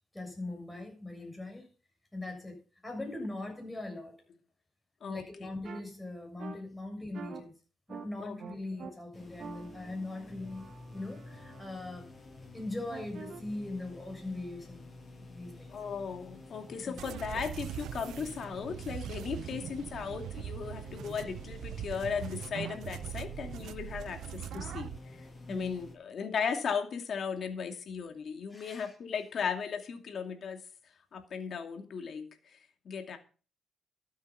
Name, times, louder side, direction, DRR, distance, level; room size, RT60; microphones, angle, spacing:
voice 1, 0.1-1.7 2.1-4.2 5.1-7.5 7.9-12.1 12.5-14.9 15.3-15.7 16.8-17.0 25.5-25.7 28.5-28.9, left 2 dB, 10° left, 7.1 m, -41 dB
sound 1, 5.6-5.8 6.4-6.6 7.1-7.4 7.9-8.1 8.4-8.9 9.4-11.6 12.9-13.4, right 6 dB, 60° right, 2.0 m, -46 dB
sound 2, 9.1-26.0, left 2 dB, 30° left, 5.8 m, -50 dB
voice 2, 15.7-30.6 31.1-32.6 32.8-33.2, left 6 dB, 55° left, 2.4 m, -37 dB
sound 3, 17.0-25.0, right 11 dB, 75° right, 0.5 m, -41 dB
12.5 x 8.2 x 5.7 m
cardioid pair, 90°, 0 cm